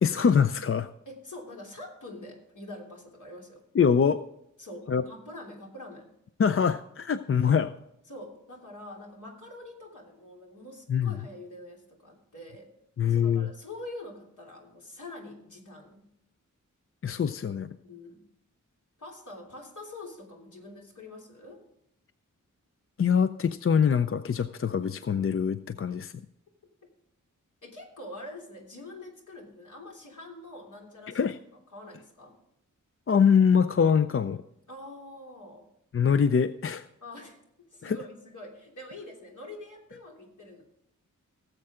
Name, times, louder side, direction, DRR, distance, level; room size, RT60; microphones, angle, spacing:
voice 1, 0.0-0.9 3.7-4.2 4.9-5.0 6.4-7.7 10.9-11.1 13.0-13.5 17.0-17.7 23.0-26.1 31.1-31.4 33.1-34.4 35.9-36.9 37.8-38.0, left 7 dB, 45° left, 12 dB, 0.4 m, -24 dB
voice 2, 1.0-3.6 4.6-6.1 8.1-12.7 13.1-16.1 17.8-18.2 19.0-21.6 27.6-31.3 31.7-32.4 34.7-35.6 37.0-37.4 37.7-40.6, left 1 dB, 70° left, -1 dB, 3.2 m, -45 dB
18.0 x 7.7 x 3.7 m, 0.81 s
wide cardioid pair, 100°, 32 cm